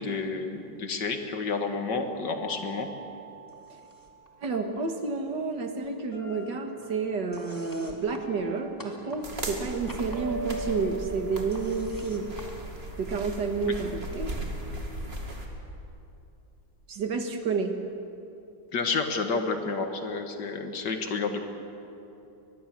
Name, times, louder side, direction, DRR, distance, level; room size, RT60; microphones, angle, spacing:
voice 1, 0.0-2.9 13.7-13.8 18.7-21.4, left 4 dB, 65° left, 6 dB, 2.2 m, -30 dB
sound 1, 2.3-4.7 6.1-7.1 8.1-9.4 10.1-12.4, right 2 dB, 90° left, 7.8 m, -42 dB
sound 2, 3.5-4.3 4.5-5.6 5.8-13.4, left 1 dB, 10° left, 2.4 m, -50 dB
voice 2, 4.4-12.3 13.0-14.3 16.9-17.8, right 4 dB, 65° right, 5 dB, 2.2 m, -30 dB
sound 3, 9.2-15.5, right 1 dB, 30° right, 2.5 m, -37 dB
23.5 x 21.0 x 7.6 m, 2.8 s
omnidirectional pair, 2.0 m